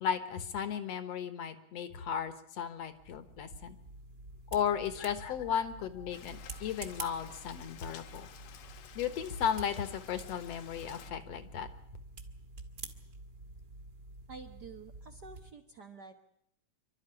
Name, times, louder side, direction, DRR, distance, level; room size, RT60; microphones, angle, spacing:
voice 1, 0.0-3.8 4.5-8.3 9.0-11.7, left 8 dB, 60° left, 11 dB, 2.1 m, -35 dB
sound 1, 2.8-15.5, right 3 dB, 35° right, 1.5 m, -49 dB
Rain, 6.1-11.1, left 9 dB, 80° left, 2.8 m, -52 dB
voice 2, 14.3-16.1, right 4 dB, 75° right, 5 dB, 0.9 m, -49 dB
27.0 x 12.5 x 9.8 m, 0.72 s
omnidirectional pair, 3.8 m